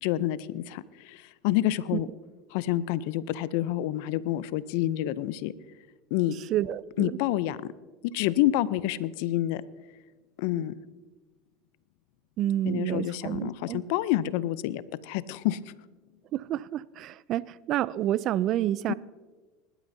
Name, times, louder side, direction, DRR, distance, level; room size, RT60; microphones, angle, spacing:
voice 1, 0.0-2.1 2.5-5.5 6.1-6.3 7.0-7.6 8.0-9.6 10.4-10.7 12.6-15.6 18.9-19.0, left 14 dB, 70° left, 0.5 m, -28 dB
voice 2, 6.5-7.1 12.4-13.8 16.3-18.9, right 12 dB, 50° right, 0.4 m, -29 dB
20.0 x 12.0 x 2.7 m
hypercardioid pair, 100°, 0 cm